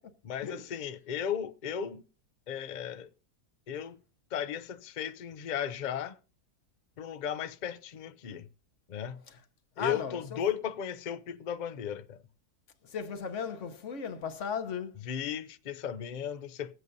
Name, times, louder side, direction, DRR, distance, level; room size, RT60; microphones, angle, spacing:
voice 1, 0.2-2.0 2.5-3.1 3.7-4.0 4.3-6.2 7.0-8.5 8.9-9.2 9.8-12.2 15.1-16.7, left 8 dB, 80° left, 0.4 m, -35 dB
voice 2, 9.8-10.4 12.8-15.0, left 6 dB, 55° left, 1.3 m, -36 dB
20.5 x 7.8 x 2.6 m
omnidirectional pair, 1.6 m